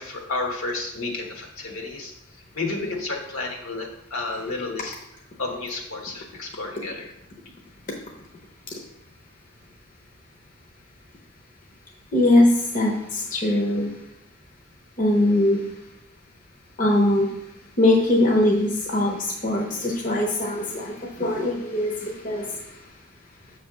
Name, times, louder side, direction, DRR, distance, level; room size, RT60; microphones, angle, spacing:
voice 1, 0.0-2.1 2.5-5.0 5.4-7.1, left 3 dB, 75° left, 0 dB, 1.4 m, -31 dB
voice 2, 12.1-13.9 15.0-15.6 16.8-17.3 17.8-19.2 19.4-22.4, left 1 dB, 35° left, -1 dB, 0.8 m, -21 dB
7.6 x 3.3 x 6.0 m, 0.84 s
head